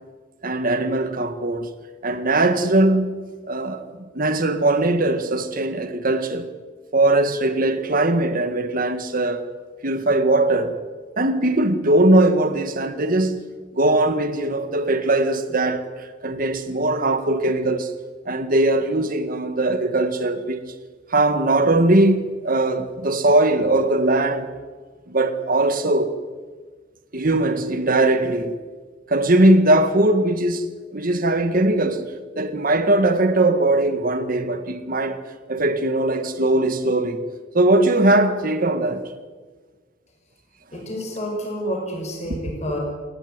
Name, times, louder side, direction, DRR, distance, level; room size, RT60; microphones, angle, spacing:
voice 1, 0.4-1.7 2.0-3.1 3.4-6.5 6.9-9.5 9.8-10.8 11.2-13.4 13.7-17.9 18.3-20.6 21.1-24.5 25.1-26.1 27.1-28.6 29.1-35.2 35.5-37.3 37.5-39.1, right 2 dB, 45° right, 1.9 m, -20 dB
voice 2, 40.7-42.8, equal, 35° left, 5.6 m, -29 dB
28.5 x 12.0 x 9.5 m
head